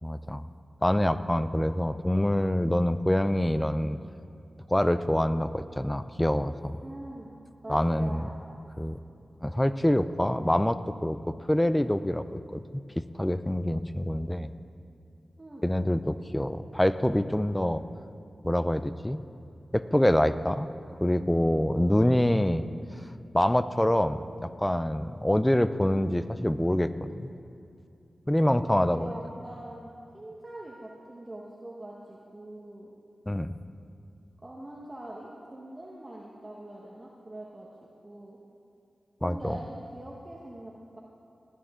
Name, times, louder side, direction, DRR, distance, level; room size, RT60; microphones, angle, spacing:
voice 1, 0.0-0.5 0.8-4.0 4.7-6.8 7.7-8.3 8.8-9.0 9.4-11.2 11.5-14.5 15.6-17.8 18.4-19.2 19.7-20.7 21.0-22.7 23.3-27.3 28.3-29.1 33.3-33.6 39.2-39.6, left 1 dB, 10° left, 12 dB, 0.5 m, -26 dB
voice 2, 6.8-7.3 7.6-8.3 15.4-15.6 28.7-32.9 34.4-37.7 38.0-38.4 39.2-41.0, right 1 dB, 25° right, -4 dB, 1.3 m, -43 dB
18.5 x 11.0 x 3.7 m, 2.6 s
cardioid pair, 55°, 0 cm